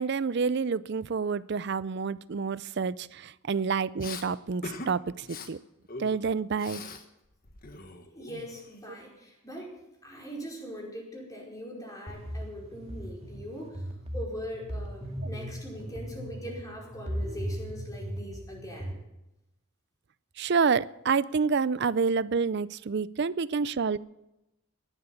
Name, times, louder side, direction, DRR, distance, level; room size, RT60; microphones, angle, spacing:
voice 1, 0.0-5.6 6.0-6.8 20.4-24.0, right 5 dB, 50° right, 19 dB, 0.5 m, -28 dB
Respiratory sounds, 4.0-4.3 4.6-4.9 5.2-5.5 5.9-7.0 7.3-8.7, left 3 dB, 40° left, 1.4 m, -42 dB
voice 2, 8.1-9.7 10.0-18.9, equal, 15° left, -2 dB, 4.9 m, -41 dB
sound 1, 12.1-18.9, equal, 30° right, 2.1 m, -38 dB
16.5 x 11.5 x 7.1 m, 0.93 s
head